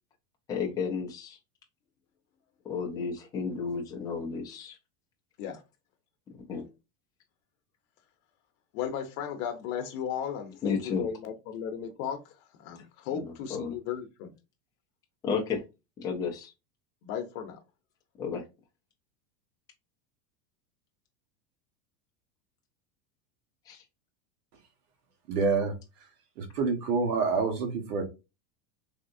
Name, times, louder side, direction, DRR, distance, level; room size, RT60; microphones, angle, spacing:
voice 1, 0.5-1.4 2.6-4.8 6.3-6.6 10.6-11.1 13.1-13.8 15.2-15.6 16.0-16.5 18.2-18.4 23.7-23.8, left 5 dB, 10° left, 0.3 m, -32 dB
voice 2, 8.7-12.2 12.6-14.3 17.0-17.6, left 8 dB, 55° left, 0.8 m, -35 dB
voice 3, 25.3-25.7 26.4-28.0, right 4 dB, 80° right, 1.4 m, -27 dB
3.5 x 2.8 x 2.5 m
supercardioid pair, 140°, 46 cm